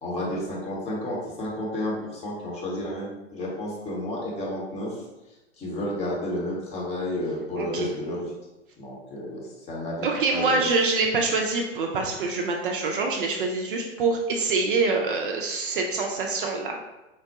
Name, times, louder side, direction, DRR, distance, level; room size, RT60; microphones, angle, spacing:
voice 1, 0.0-5.0 5.6-8.3 8.8-9.4 9.7-10.6, left 1 dB, 20° left, -4 dB, 0.8 m, -31 dB
voice 2, 7.6-7.9 10.0-16.8, right 3 dB, 45° right, 1 dB, 0.5 m, -25 dB
4.4 x 2.1 x 2.8 m, 1.0 s
figure-of-eight pair, 100°, 36 cm